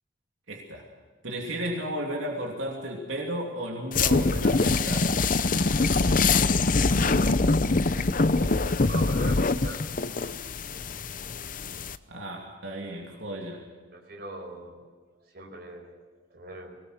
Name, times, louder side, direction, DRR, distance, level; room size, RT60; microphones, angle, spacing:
voice 1, 0.5-0.9 1.2-5.3 12.1-13.7, right 1 dB, 80° right, -1 dB, 3.0 m, -34 dB
sound 1, 3.9-12.0, left 3 dB, 40° left, 0.7 m, -24 dB
voice 2, 8.8-9.9 13.9-14.8 15.3-16.0 16.3-16.8, right 2 dB, 50° right, 2 dB, 5.1 m, -41 dB
22.0 x 19.5 x 6.4 m, 1.5 s
head